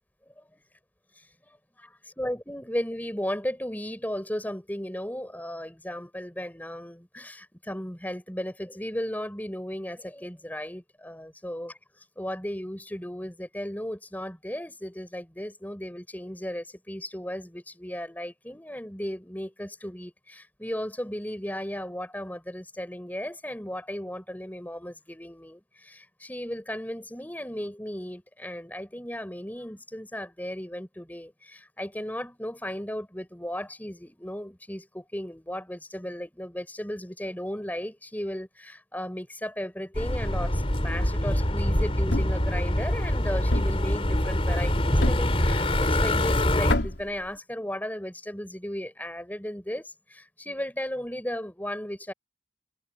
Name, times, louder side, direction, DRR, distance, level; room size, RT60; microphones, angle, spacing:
voice 1, 0.3-0.6 1.1-1.3 1.8-11.8 12.2-52.1, equal, 10° left, 4.9 m, -35 dB
sound 1, 39.9-46.7, left 1 dB, 35° left, 4.0 m, -25 dB
Thump thud, 42.1-42.5 43.5-43.9 45.0-45.4 46.7-47.1, left 1 dB, 85° left, 3.8 m, -26 dB
head